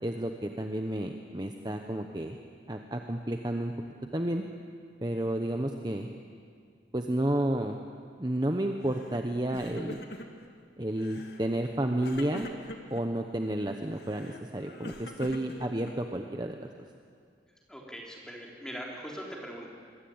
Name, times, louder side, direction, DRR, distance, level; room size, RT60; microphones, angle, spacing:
voice 1, 0.0-2.4 2.7-3.7 4.1-4.4 5.0-6.1 6.9-7.8 8.2-10.0 10.8-12.5 12.9-16.7, right 1 dB, 25° right, 4 dB, 1.0 m, -31 dB
Crying sobbing, 8.9-9.2 9.4-10.5 11.0-11.4 12.0-13.0 13.9-16.2, left 1 dB, 65° left, 2.2 m, -44 dB
voice 2, 17.7-19.7, equal, 5° left, -2 dB, 4.1 m, -41 dB
25.5 x 21.0 x 8.8 m, 2.2 s
head